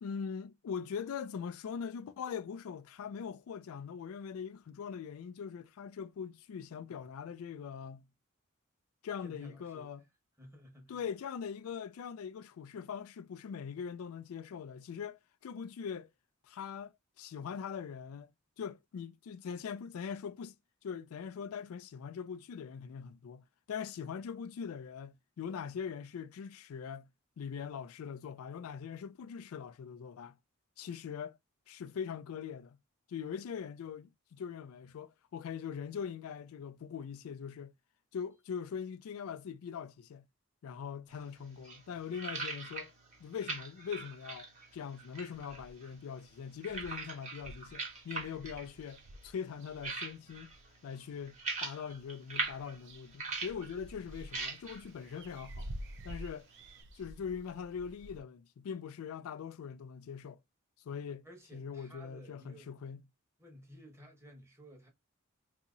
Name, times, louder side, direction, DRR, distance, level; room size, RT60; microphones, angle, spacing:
voice 1, 0.0-8.1 9.0-10.0 10.9-16.1 16.4-18.3 18.6-20.6 20.8-27.1 27.4-30.4 30.8-31.4 31.7-32.8 33.1-37.7 38.1-40.3 40.6-42.9 43.2-50.5 50.8-55.7 56.0-56.5 56.9-60.4 60.8-61.3 61.5-63.0, left 7 dB, 75° left, 0.3 m, -42 dB
voice 2, 9.2-9.9 10.4-11.0 61.2-62.7 63.4-64.9, equal, 15° right, 1.1 m, -54 dB
sound 1, 41.1-56.8, right 3 dB, 35° right, 1.3 m, -44 dB
sound 2, 45.3-45.9 46.3-46.4 46.6-50.7 51.2-52.0 52.3-58.2, right 1 dB, 60° right, 0.6 m, -50 dB
2.8 x 2.7 x 3.8 m
head